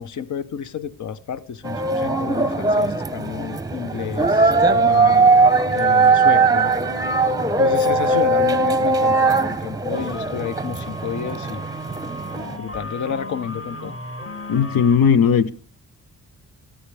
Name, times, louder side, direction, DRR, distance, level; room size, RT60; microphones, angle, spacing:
voice 1, 0.0-5.4 5.7-6.7 7.6-11.6 12.6-14.0, left 7 dB, 60° left, 0.9 m, -30 dB
sound 1, 1.6-12.6, right 3 dB, 10° right, 0.8 m, -19 dB
sound 2, 9.9-15.0, equal, 35° left, 2.0 m, -35 dB
voice 2, 14.5-15.5, left 7 dB, 85° left, 0.9 m, -16 dB
28.5 x 14.0 x 3.4 m
wide cardioid pair, 155°, 34 cm